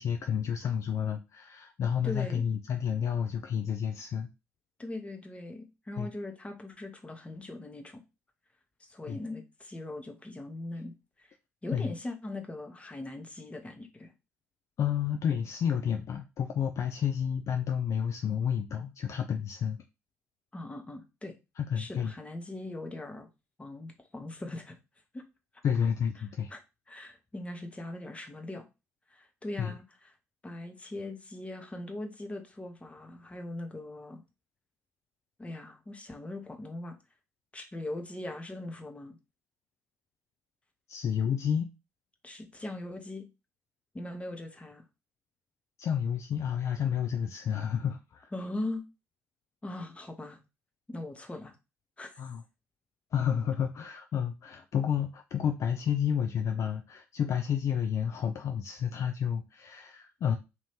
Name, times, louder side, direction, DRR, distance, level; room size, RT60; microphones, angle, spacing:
voice 1, 0.0-4.3 6.0-6.1 9.1-9.2 11.7-11.9 14.8-19.8 21.6-22.1 25.6-26.5 29.6-29.7 40.9-41.7 45.8-48.3 52.2-52.4 53.1-60.4, left 8 dB, 45° left, 0.4 m, -30 dB
voice 2, 2.0-2.4 4.8-8.0 8.8-11.4 11.6-14.1 20.5-21.3 21.8-23.3 23.6-24.8 25.1-25.2 26.2-26.6 26.9-28.6 29.1-30.1 30.4-34.2 35.4-37.0 37.5-39.2 42.2-43.3 43.9-44.8 48.3-48.8 49.6-50.4 50.9-51.6 52.0-52.2, left 2 dB, 15° left, 0.9 m, -40 dB
2.8 x 2.7 x 3.4 m
figure-of-eight pair, 50°, 7 cm